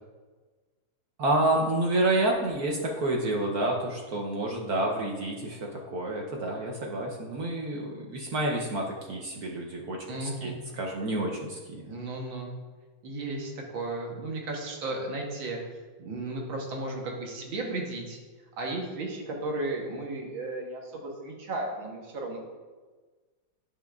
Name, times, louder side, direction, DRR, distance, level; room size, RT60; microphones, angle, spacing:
voice 1, 1.2-11.8, right 1 dB, 60° right, -1 dB, 1.1 m, -29 dB
voice 2, 10.1-10.6 11.8-12.5 13.0-15.6 16.0-18.2 18.6-22.4, right 2 dB, 75° right, 0 dB, 1.8 m, -34 dB
10.5 x 5.6 x 2.4 m, 1.4 s
omnidirectional pair, 2.2 m